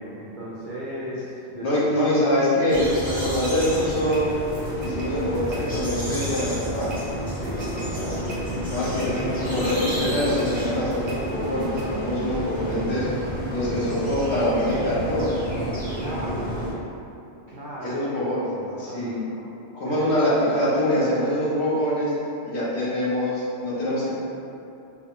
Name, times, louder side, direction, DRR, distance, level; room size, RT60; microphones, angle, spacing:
voice 1, 0.0-1.9 7.4-7.8 15.9-16.7 17.5-19.2 19.8-20.1, right 1 dB, 65° right, -7 dB, 0.5 m, -36 dB
voice 2, 1.6-4.3 4.8-6.9 8.7-9.1 9.5-13.1 13.5-15.3 17.8-18.4 18.8-19.2 19.7-22.1 22.4-24.1, left 1 dB, 60° left, -9 dB, 1.1 m, -24 dB
sound 1, 2.7-16.7, equal, 10° left, 0.6 m, -31 dB
sound 2, 3.4-11.8, right 1 dB, 50° right, 0.8 m, -41 dB
sound 3, 7.4-12.4, equal, 80° left, 1.1 m, -34 dB
3.3 x 2.1 x 3.6 m, 2.8 s
omnidirectional pair, 1.3 m